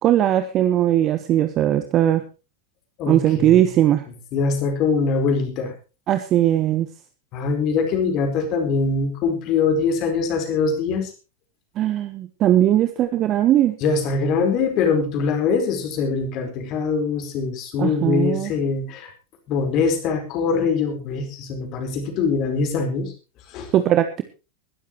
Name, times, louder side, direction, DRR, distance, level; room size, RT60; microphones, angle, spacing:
voice 1, 0.0-2.2 3.1-4.0 6.1-6.9 11.8-13.8 17.8-18.5 23.7-24.2, right 12 dB, 35° right, 10 dB, 1.2 m, -19 dB
voice 2, 3.0-3.6 4.3-5.7 7.3-11.1 13.8-19.1 19.5-23.1 23.5-23.7, left 5 dB, 40° left, 6 dB, 4.6 m, -23 dB
21.5 x 13.0 x 3.1 m, 0.32 s
figure-of-eight pair, 90°, 0 cm